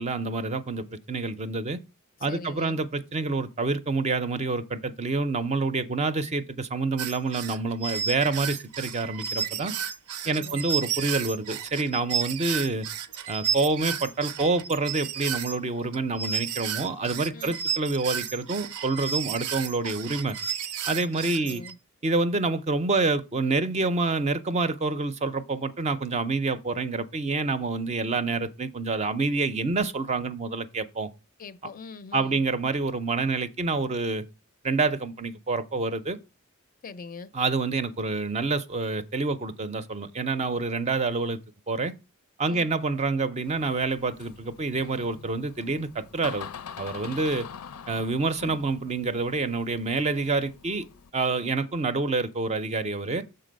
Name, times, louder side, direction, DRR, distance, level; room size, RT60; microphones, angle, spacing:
voice 1, 0.0-1.8 2.2-9.7 10.3-12.9 13.3-20.4 20.9-21.6 22.0-31.1 32.1-34.2 34.6-36.2 37.3-41.4 41.7-41.9 42.4-46.5 46.8-47.5 47.9-50.8 51.1-53.2, right 3 dB, 30° right, 0.5 m, -27 dB
voice 2, 2.3-2.8 10.2-10.6 17.3-17.6 21.4-21.8 31.4-32.4 36.8-37.3 42.5-42.7, left 4 dB, 40° left, 0.4 m, -42 dB
sound 1, 7.0-21.7, right 7 dB, 80° right, 0.5 m, -32 dB
Door, 43.4-51.1, left 7 dB, 90° left, 0.5 m, -44 dB
6.6 x 4.0 x 5.1 m
head